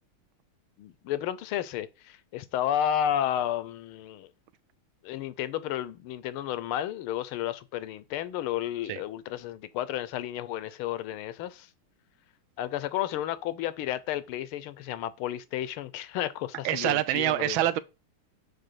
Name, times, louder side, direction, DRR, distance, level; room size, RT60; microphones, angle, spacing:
voice 1, 0.8-4.3 5.0-11.7 12.6-17.6, left 11 dB, 90° left, 1.5 m, -32 dB
voice 2, 16.6-17.8, right 14 dB, 80° right, 1.4 m, -26 dB
7.8 x 3.3 x 5.7 m
omnidirectional pair, 2.3 m